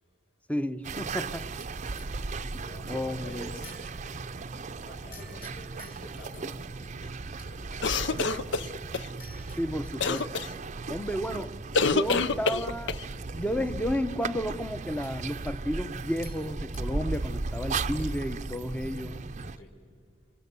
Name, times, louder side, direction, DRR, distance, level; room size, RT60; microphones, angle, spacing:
voice 1, 0.5-1.5 2.9-3.5 9.6-10.5 10.9-11.5 11.9-13.0 13.3-19.1, equal, 10° left, 12 dB, 0.8 m, -32 dB
sound 1, 0.8-19.6, right 3 dB, 40° right, 0.6 m, -36 dB
sound 2, 1.0-2.1 2.9-3.2 3.6-4.4 5.1-6.4 6.8-7.9 9.2-10.6 11.2-11.4 11.7-12.1 12.9-13.0 13.3-14.0 14.2-14.3 15.0-15.9 16.2-16.9 17.1-17.5 17.8-18.4 18.6-18.9 19.2-19.6, left 4 dB, 50° left, 4.0 m, -54 dB
voice 2, 2.5-3.8 4.8-6.7 7.4-8.7 19.4-19.7, equal, 80° left, -2 dB, 5.6 m, -48 dB
sound 3, 7.8-9.1 10.0-10.5 11.7-13.0, left 4 dB, 65° left, 0.6 m, -26 dB
27.5 x 26.5 x 6.9 m, 2.2 s
head